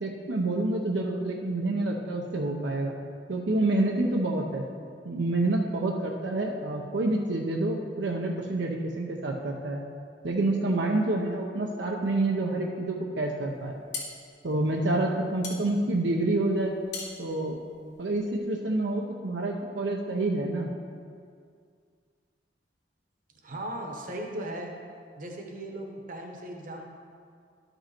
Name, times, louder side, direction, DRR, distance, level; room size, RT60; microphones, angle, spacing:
voice 1, 0.0-2.9 3.3-4.6 5.0-9.8 10.2-13.7 14.4-16.7 17.2-17.6 18.0-20.7, right 2 dB, 80° right, 0 dB, 0.7 m, -28 dB
sound 1, 13.6-18.5, left 4 dB, 85° left, 1.5 m, -41 dB
voice 2, 23.4-24.7 25.2-26.9, right 1 dB, 50° right, 1 dB, 1.1 m, -37 dB
11.5 x 5.4 x 4.4 m, 2.2 s
head